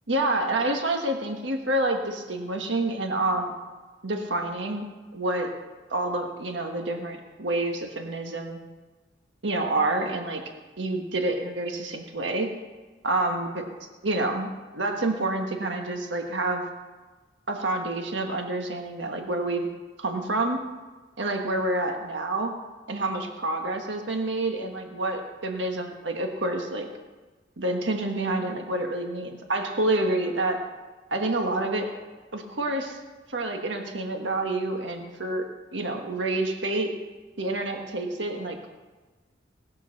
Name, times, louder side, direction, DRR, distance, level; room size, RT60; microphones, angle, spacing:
voice 1, 0.1-3.5 4.0-4.8 5.1-5.5 5.9-8.6 9.4-10.4 10.8-12.5 13.0-13.6 14.0-14.5 14.7-16.6 17.5-19.7 20.0-20.6 21.2-22.5 22.9-26.9 27.6-30.6 31.1-31.9 32.3-33.0 33.3-35.4 35.7-36.9 37.4-38.6, right 2 dB, 85° right, 3 dB, 1.5 m, -28 dB
19.0 x 6.6 x 6.4 m, 1.3 s
head